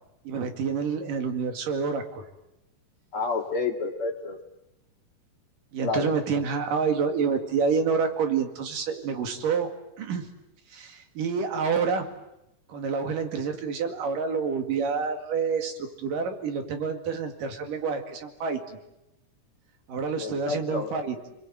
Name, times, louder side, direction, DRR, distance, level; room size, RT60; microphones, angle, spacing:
voice 1, 0.3-2.3 5.7-9.7 10.0-10.3 10.7-12.1 12.7-18.8 19.9-21.2, right 5 dB, 85° right, 5 dB, 3.9 m, -28 dB
voice 2, 3.1-4.4 5.8-6.1 20.2-20.9, left 4 dB, 45° left, 1 dB, 3.1 m, -29 dB
30.0 x 22.0 x 9.2 m, 0.89 s
omnidirectional pair, 3.8 m